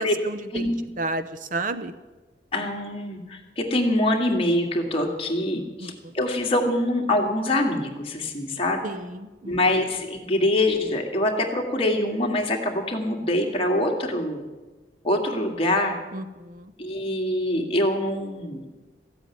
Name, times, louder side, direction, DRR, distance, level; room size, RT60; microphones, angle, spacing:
voice 1, 0.2-0.7 1.0-1.9 5.8-5.9 8.8-9.6 16.1-16.7, right 2 dB, 45° right, 12 dB, 0.6 m, -32 dB
voice 2, 2.5-8.8 9.4-14.4 15.0-16.0 16.8-18.6, left 1 dB, 30° left, 1 dB, 2.0 m, -24 dB
15.0 x 8.3 x 9.6 m, 1.2 s
head